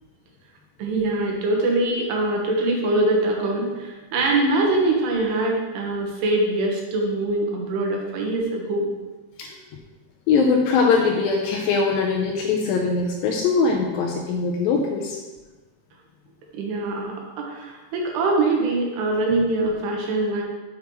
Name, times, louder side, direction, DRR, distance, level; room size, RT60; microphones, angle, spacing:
voice 1, 0.8-8.9 16.5-20.4, right 2 dB, 90° right, 0 dB, 3.3 m, -23 dB
voice 2, 10.3-15.2, left 4 dB, 80° left, 1 dB, 2.2 m, -21 dB
7.5 x 7.1 x 3.1 m, 1.2 s
omnidirectional pair, 4.7 m